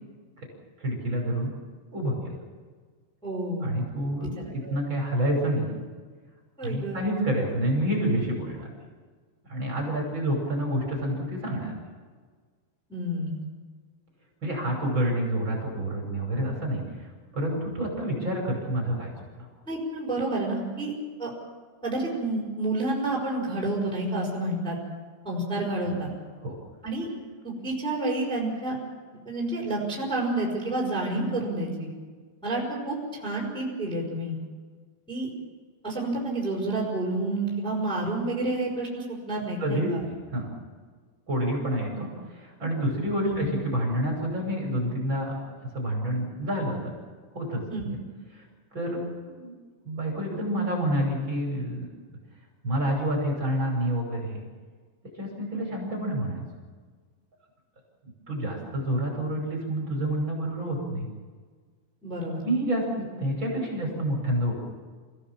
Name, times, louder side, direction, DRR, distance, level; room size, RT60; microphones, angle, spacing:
voice 1, 0.8-1.5 1.9-2.3 3.6-5.7 6.6-8.7 9.5-11.7 14.4-17.1 17.3-19.1 19.4-19.5 25.9-26.0 26.4-26.6 39.6-40.5 41.3-45.4 45.7-46.9 47.3-48.0 48.3-48.4 48.7-49.5 49.8-51.8 52.6-54.4 55.2-56.5 58.3-61.1 62.4-64.5, right 1 dB, 25° right, -1 dB, 6.3 m, -28 dB
voice 2, 3.2-3.7 4.2-4.3 4.6-4.8 6.6-7.1 12.9-13.5 19.7-20.9 21.2-21.3 21.8-24.8 25.2-26.1 26.8-27.1 27.4-28.8 29.2-31.9 32.4-33.0 33.2-34.4 35.1-35.3 35.8-40.0 43.2-43.5 47.7-47.8 62.0-62.4, right 2 dB, ahead, -3 dB, 5.2 m, -29 dB
29.0 x 17.0 x 7.4 m, 1.5 s
omnidirectional pair, 5.2 m